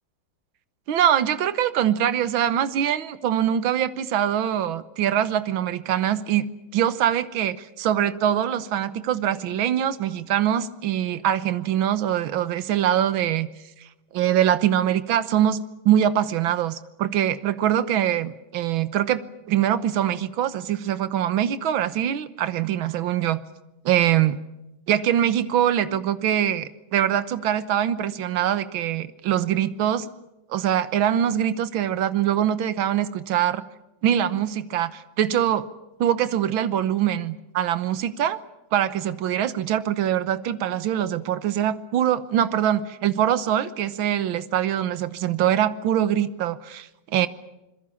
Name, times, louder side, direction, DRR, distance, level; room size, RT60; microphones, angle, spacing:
voice 1, 0.9-6.5 6.7-13.5 14.1-19.2 19.5-23.4 23.9-24.4 24.9-30.1 30.5-33.6 34.0-35.6 36.0-38.4 38.7-47.3, right 10 dB, 80° right, 13 dB, 1.9 m, -23 dB
26.5 x 22.0 x 7.1 m, 0.94 s
omnidirectional pair, 2.2 m